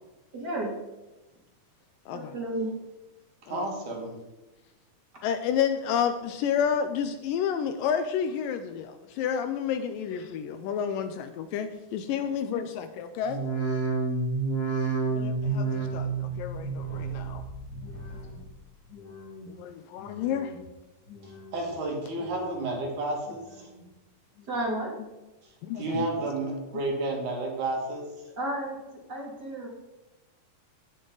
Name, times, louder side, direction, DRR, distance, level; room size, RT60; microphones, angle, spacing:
voice 1, 0.3-0.7 2.1-2.7 24.5-24.9 28.4-28.8 29.1-29.7, right 1 dB, 30° right, -2 dB, 2.3 m, -32 dB
voice 2, 3.5-4.1 21.2-23.7 25.8-28.1, right 2 dB, 60° right, 0 dB, 3.4 m, -31 dB
voice 3, 5.2-13.4 15.1-17.4 19.6-20.5 25.6-26.1, left 8 dB, 80° left, 8 dB, 2.1 m, -30 dB
sound 1, 13.2-18.6 18.9-19.5 20.0-20.6 21.1-21.7 22.1-22.8 23.3-23.8 24.4-24.5, right 4 dB, 35° left, 2.1 m, -32 dB
17.5 x 6.4 x 3.9 m, 1.1 s
omnidirectional pair, 4.2 m